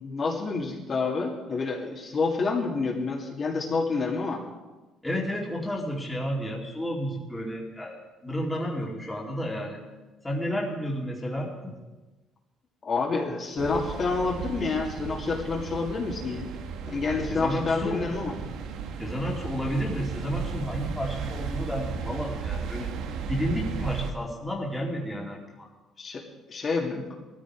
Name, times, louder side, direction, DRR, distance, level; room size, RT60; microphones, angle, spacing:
voice 1, 0.0-4.4 12.8-16.5 16.9-18.3 26.0-26.2 26.5-27.1, left 4 dB, 35° left, -1 dB, 2.3 m, -28 dB
voice 2, 5.0-9.8 10.2-11.7 17.1-18.0 19.0-22.9 23.3-25.7, equal, 5° left, -2 dB, 2.5 m, -31 dB
sound 1, 13.6-24.1, right 6 dB, 75° right, 1.4 m, -35 dB
19.5 x 14.0 x 4.8 m, 1.2 s
cardioid pair, 145°, 0 cm